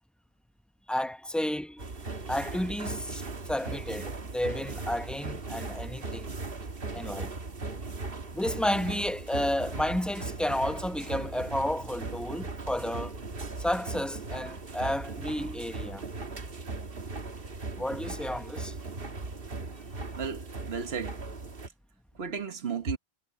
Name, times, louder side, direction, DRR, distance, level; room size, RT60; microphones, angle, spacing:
voice 1, 0.9-1.8 2.3-3.2 3.5-6.3 6.9-7.3 8.3-13.2 13.6-16.0 17.8-18.7, left 1 dB, ahead, 0.8 m, -31 dB
sound 1, 1.8-21.7, right 3 dB, 65° right, 1.9 m, -38 dB
voice 2, 20.2-21.2 22.2-23.0, right 6 dB, 80° right, 1.5 m, -34 dB
omnidirectional pair, 1.0 m